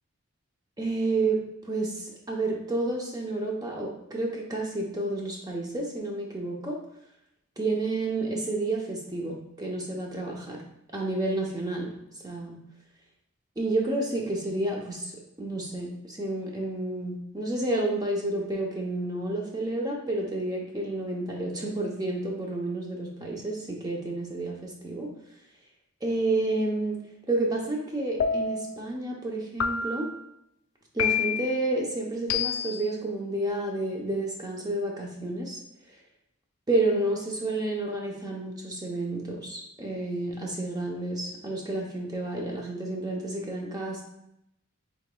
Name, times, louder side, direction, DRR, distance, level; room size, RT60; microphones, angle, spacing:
voice 1, 0.8-6.8 7.6-10.6 10.9-11.9 12.2-12.5 13.6-15.1 15.4-25.1 26.0-27.0 27.3-30.1 30.9-35.6 36.7-44.0, right 2 dB, 20° right, -1 dB, 0.6 m, -30 dB
sound 1, 28.2-28.8 29.6-30.2 31.0-31.6 32.3-32.9, left 6 dB, 65° left, 0.3 m, -28 dB
5.0 x 3.4 x 2.2 m, 0.81 s
head